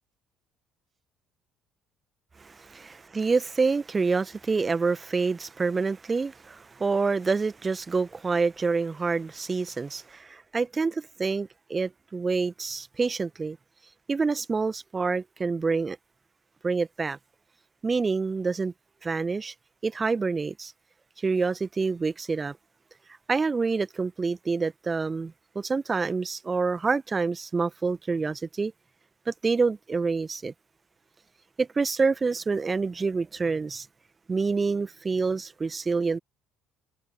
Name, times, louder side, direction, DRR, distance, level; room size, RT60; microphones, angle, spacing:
voice 1, 2.4-13.6 14.1-16.0 16.6-17.2 17.8-18.7 19.0-19.5 19.8-20.7 21.2-22.6 23.3-28.7 29.3-30.5 31.6-33.9 34.3-36.2, right 4 dB, 25° right, 1.2 m, -27 dB
figure-of-eight pair, 50°, 0 cm